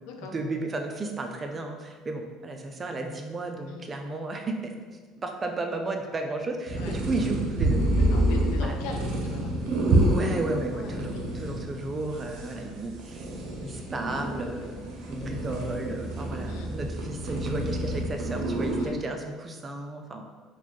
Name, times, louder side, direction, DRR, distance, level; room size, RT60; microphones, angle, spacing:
voice 1, 0.2-4.7 5.2-7.8 8.6-8.7 10.1-13.3 13.6-20.2, right 2 dB, 30° right, 4 dB, 0.4 m, -33 dB
sound 1, 6.7-18.9, right 1 dB, 75° right, 0.7 m, -28 dB
voice 2, 8.0-9.5 10.7-11.1 16.4-16.7 18.7-19.0, left 4 dB, 80° left, 2 dB, 0.5 m, -40 dB
4.1 x 2.2 x 3.1 m, 1.5 s
supercardioid pair, 90°, 0 cm